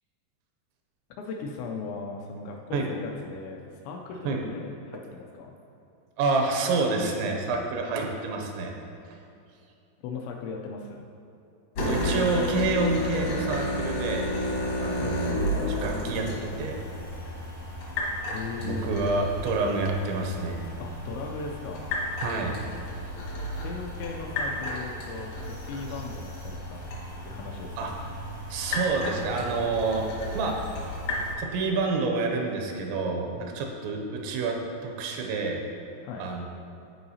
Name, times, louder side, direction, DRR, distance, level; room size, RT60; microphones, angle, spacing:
voice 1, 1.2-5.5 10.0-11.1 15.0-15.2 18.3-18.9 20.8-21.8 23.6-26.8 27.2-28.0 36.0-36.3, left 4 dB, 85° left, 1 dB, 2.6 m, -38 dB
voice 2, 6.2-8.7 11.9-14.3 14.8-15.4 15.6-16.8 18.6-20.6 22.2-22.5 27.8-28.1 28.5-30.1 30.3-30.8 31.1-34.6 34.8-35.6 36.2-36.4, right 3 dB, 80° right, 2 dB, 2.9 m, -28 dB
sound 1, 11.7-31.3, left 1 dB, 65° left, 1.5 m, -32 dB
14.0 x 4.7 x 2.8 m, 2.6 s
omnidirectional pair, 5.4 m